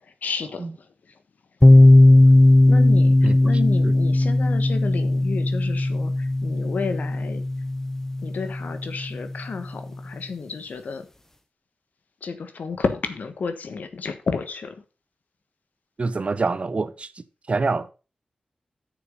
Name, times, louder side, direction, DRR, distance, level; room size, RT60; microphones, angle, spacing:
voice 1, 0.2-0.7 2.7-7.4 8.2-11.1 12.2-14.8, left 5 dB, 80° left, 1.3 m, -31 dB
sound 1, 1.6-9.3, left 1 dB, 15° left, 0.8 m, -17 dB
voice 2, 16.0-17.9, right 3 dB, 50° right, 0.8 m, -26 dB
9.3 x 6.7 x 5.3 m
wide cardioid pair, 75°, 3 cm